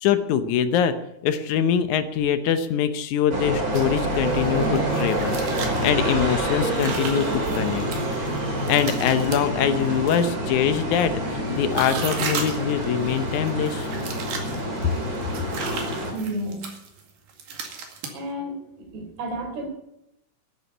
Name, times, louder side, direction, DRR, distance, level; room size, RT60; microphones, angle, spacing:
voice 1, 0.0-0.9 1.2-5.4 5.8-7.8 8.7-13.9, left 8 dB, 80° left, 10 dB, 1.7 m, -23 dB
sound 1, 3.3-16.1, right 1 dB, 25° right, 3.0 m, -27 dB
sound 2, 3.7-10.2 11.0-18.2, right 5 dB, 65° right, 3.7 m, -35 dB
voice 2, 16.1-16.7 18.1-18.6 18.9-19.7, right 1 dB, 90° right, 3 dB, 5.6 m, -31 dB
11.0 x 10.5 x 9.7 m, 0.84 s
omnidirectional pair, 4.5 m